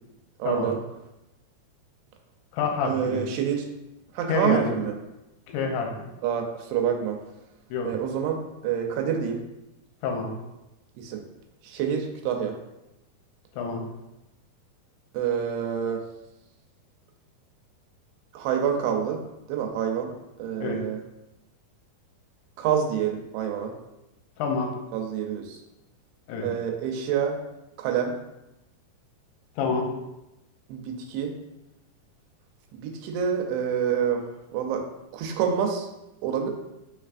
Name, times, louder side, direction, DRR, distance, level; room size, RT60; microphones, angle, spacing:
voice 1, 0.4-0.8 2.9-3.7 4.1-5.0 6.2-7.2 7.9-9.4 11.0-11.2 11.6-12.6 15.1-16.0 18.3-19.2 19.5-20.1 20.4-21.0 22.6-23.7 24.9-25.6 26.4-27.4 27.8-28.1 30.7-31.3 32.7-34.8 35.1-35.9 36.2-36.5, right 8 dB, 90° right, 2 dB, 2.6 m, -27 dB
voice 2, 2.5-3.2 4.3-4.7 5.5-5.9 7.7-7.9 10.0-10.3 13.5-13.8 20.6-20.8 24.4-24.7 26.3-26.5 29.6-29.9, left 4 dB, 80° left, 2 dB, 1.9 m, -27 dB
5.7 x 3.3 x 2.5 m, 0.94 s
omnidirectional pair, 4.5 m